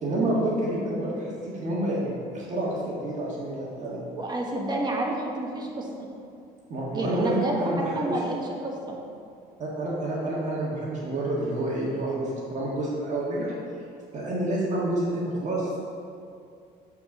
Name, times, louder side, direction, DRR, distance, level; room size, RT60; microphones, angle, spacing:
voice 1, 0.0-4.0 6.7-8.2 9.6-13.5 14.1-15.8, right 1 dB, 45° right, -5 dB, 1.7 m, -28 dB
voice 2, 4.2-6.1 6.9-8.4 8.6-8.9, right 2 dB, 25° right, -1 dB, 1.4 m, -29 dB
7.8 x 4.2 x 6.1 m, 2.4 s
cardioid pair, 110°, 17 cm